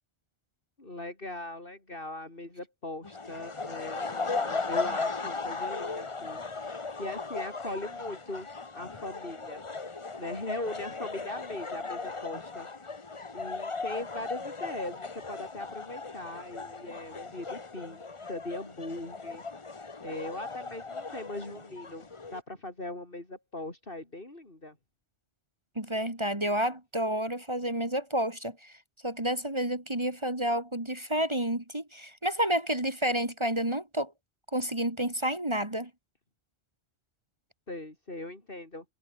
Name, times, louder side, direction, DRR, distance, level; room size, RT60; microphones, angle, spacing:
voice 1, 0.8-8.5 8.7-9.6 10.2-12.7 13.3-19.4 20.0-24.8 37.7-38.8, left 2 dB, 50° left, 4.8 m, -40 dB
sound 1, 3.0-22.4, left 3 dB, 30° left, 1.1 m, -37 dB
voice 2, 25.8-28.7 29.0-34.1 34.5-35.9, right 1 dB, 25° right, 2.7 m, -30 dB
omnidirectional pair, 1.2 m